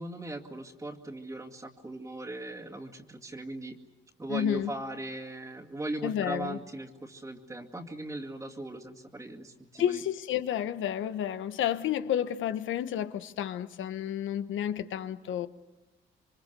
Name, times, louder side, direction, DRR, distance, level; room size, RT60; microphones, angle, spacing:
voice 1, 0.0-3.8 4.2-10.0, right 2 dB, 15° right, 2.3 m, -39 dB
voice 2, 4.3-4.7 6.0-6.6 9.8-15.5, left 10 dB, 75° left, 1.2 m, -31 dB
27.0 x 24.0 x 6.8 m
cardioid pair, 90°, 20 cm